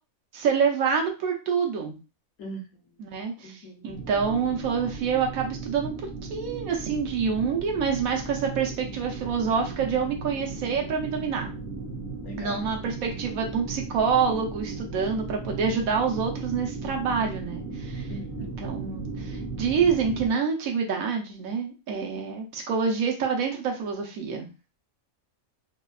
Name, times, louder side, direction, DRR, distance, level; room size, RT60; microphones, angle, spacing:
voice 1, 0.3-2.0 3.0-5.9 6.3-11.5 12.4-18.1 18.4-24.5, right 6 dB, 90° right, 1 dB, 1.1 m, -27 dB
voice 2, 3.4-3.9 12.2-12.8 18.1-19.1, left 1 dB, 75° left, 0 dB, 1.2 m, -41 dB
sound 1, 3.9-20.3, right 4 dB, 15° right, 0.4 m, -36 dB
3.3 x 2.1 x 2.3 m, 0.30 s
omnidirectional pair, 1.4 m